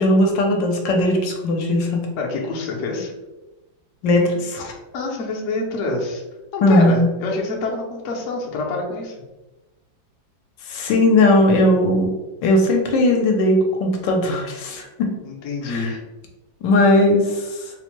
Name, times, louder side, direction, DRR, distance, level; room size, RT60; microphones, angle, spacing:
voice 1, 0.0-2.0 4.0-4.7 6.6-7.1 10.7-12.1 12.4-15.1 15.7-15.9 16.6-17.7, left 1 dB, 80° left, 2 dB, 1.3 m, -18 dB
voice 2, 2.2-3.1 4.9-6.2 6.5-9.2 15.2-16.0, left 3 dB, 60° left, -2 dB, 0.8 m, -26 dB
4.2 x 2.1 x 3.0 m, 1.1 s
omnidirectional pair, 2.0 m